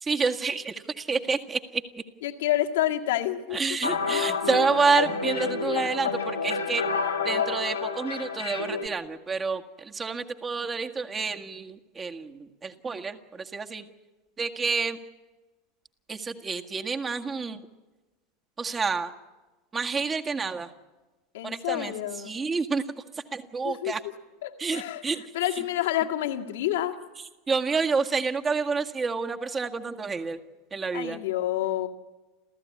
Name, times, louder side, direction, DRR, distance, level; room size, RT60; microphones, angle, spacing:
voice 1, 0.0-1.8 3.5-6.8 7.2-13.8 14.4-15.0 16.1-17.6 18.6-19.1 19.7-20.7 21.4-21.9 22.3-22.8 23.3-24.0 24.6-25.2 27.5-30.4 30.7-31.2, right 4 dB, 20° right, 5 dB, 1.8 m, -28 dB
voice 2, 2.2-3.6 21.3-22.3 23.6-23.9 24.4-27.0 30.9-31.9, left 13 dB, 65° left, 4 dB, 1.9 m, -28 dB
sound 1, 3.8-8.9, left 5 dB, 80° left, 2.3 m, -29 dB
29.5 x 14.5 x 9.7 m, 1.2 s
figure-of-eight pair, 80°, 0 cm